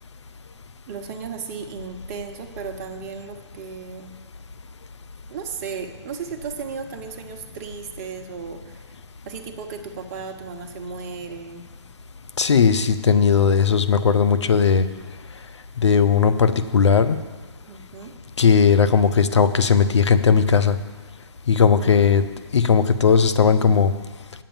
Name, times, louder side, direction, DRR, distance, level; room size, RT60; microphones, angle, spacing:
voice 1, 0.9-4.2 5.3-8.9 9.2-11.7 17.7-18.1 21.7-22.0, right 6 dB, 35° right, 5 dB, 1.0 m, -35 dB
voice 2, 12.4-14.8 15.8-17.2 18.4-20.8 21.5-22.2 22.5-23.9, left 6 dB, 75° left, 11 dB, 0.8 m, -17 dB
8.7 x 7.5 x 7.1 m, 1.4 s
hypercardioid pair, 140°, 15 cm